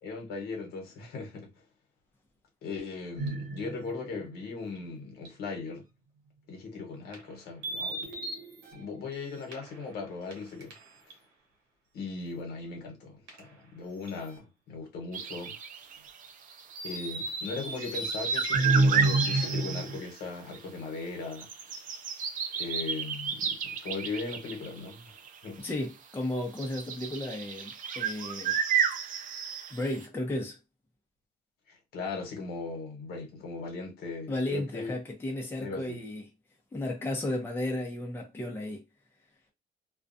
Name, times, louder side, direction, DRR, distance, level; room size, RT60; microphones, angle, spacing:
voice 1, 0.0-1.5 2.6-5.8 6.5-8.1 8.7-10.7 11.9-15.6 16.8-21.7 22.6-25.1 25.4-25.6 31.7-34.9 35.6-36.0, left 4 dB, 70° left, 1.1 m, -38 dB
sound 1, 3.2-4.2 4.7-4.8 5.2-5.3 7.1-7.2 7.6-9.8 10.3-11.1 13.3-13.4 14.1-14.3 16.7-20.0, right 2 dB, 85° right, 1.2 m, -30 dB
sound 2, 15.1-20.3 20.5-20.6 21.1-25.8 26.4-30.1, right 7 dB, 50° right, 0.5 m, -33 dB
voice 2, 25.6-28.6 29.7-30.6 34.3-36.2 36.7-38.8, left 1 dB, 15° left, 0.7 m, -34 dB
2.3 x 2.3 x 2.6 m
cardioid pair, 110°, 17 cm